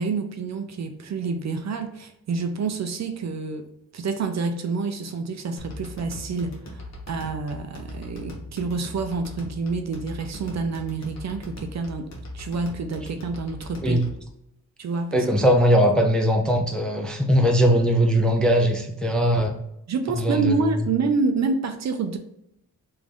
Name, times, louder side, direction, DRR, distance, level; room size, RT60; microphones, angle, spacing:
voice 1, 0.0-3.7 3.9-12.1 12.3-14.1 14.8-15.3 19.9-22.2, right 4 dB, 50° right, 7 dB, 0.5 m, -28 dB
sound 1, 5.6-14.3, left 1 dB, 50° left, 1.1 m, -39 dB
voice 2, 15.1-19.6 20.2-20.5, equal, ahead, 2 dB, 0.5 m, -20 dB
3.0 x 2.6 x 3.6 m, 0.79 s
cardioid pair, 75°, 34 cm